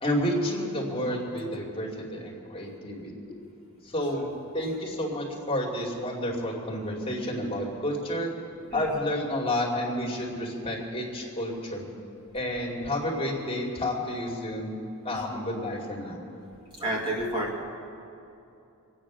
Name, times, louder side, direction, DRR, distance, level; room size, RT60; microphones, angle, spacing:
voice 1, 0.0-3.1 3.8-8.3 8.7-11.9 12.3-14.7 15.0-16.2, left 1 dB, 25° left, -3 dB, 2.6 m, -30 dB
voice 2, 16.7-17.6, right 1 dB, 20° right, -3 dB, 2.0 m, -30 dB
24.5 x 9.3 x 6.2 m, 2.8 s
head